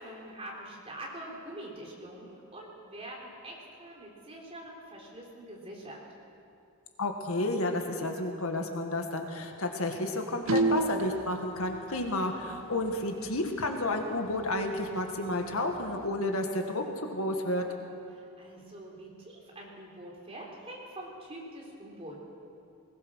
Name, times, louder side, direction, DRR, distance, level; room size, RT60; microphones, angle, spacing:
voice 1, 0.0-6.0 18.1-22.2, right 1 dB, 25° right, -3 dB, 3.9 m, -45 dB
voice 2, 7.0-17.7, left 1 dB, 70° left, 3 dB, 2.0 m, -31 dB
sound 1, 10.5-11.2 12.9-13.0 13.3-13.4 13.8-13.9 14.4-14.5 15.3-16.1, right 2 dB, 65° right, 1.1 m, -27 dB
20.5 x 19.5 x 6.4 m, 2.6 s
head